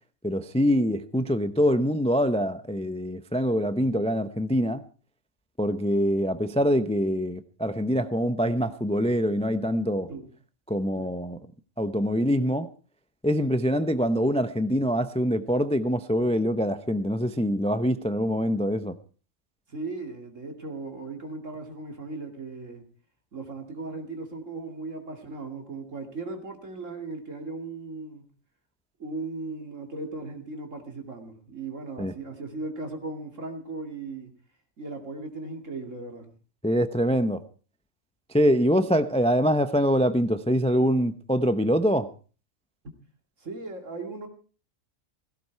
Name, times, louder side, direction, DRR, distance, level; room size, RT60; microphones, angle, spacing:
voice 1, 0.2-4.8 5.6-10.1 10.7-11.4 11.8-12.7 13.2-18.9 32.0-32.1 36.6-37.4 38.3-42.1, equal, 5° left, 0.5 m, -24 dB
voice 2, 19.7-22.8 23.3-28.3 29.0-34.3 34.8-36.3 37.0-37.1 43.4-44.3, right 3 dB, 65° right, 2.9 m, -37 dB
16.5 x 16.0 x 4.7 m
omnidirectional pair, 1.4 m